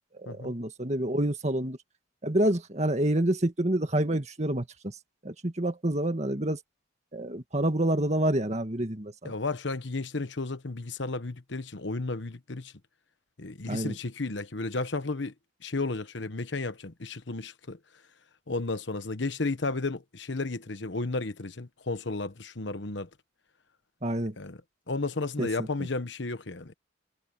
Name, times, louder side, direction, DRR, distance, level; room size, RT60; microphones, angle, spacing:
voice 1, 0.1-1.8 2.2-4.9 5.2-6.6 7.1-9.3 13.7-13.9 24.0-24.3 25.4-25.7, right 1 dB, 35° right, 1.9 m, -28 dB
voice 2, 9.2-12.7 13.4-15.3 15.6-17.8 18.5-23.1 24.4-24.6 24.9-26.7, left 3 dB, 65° left, 1.1 m, -33 dB
head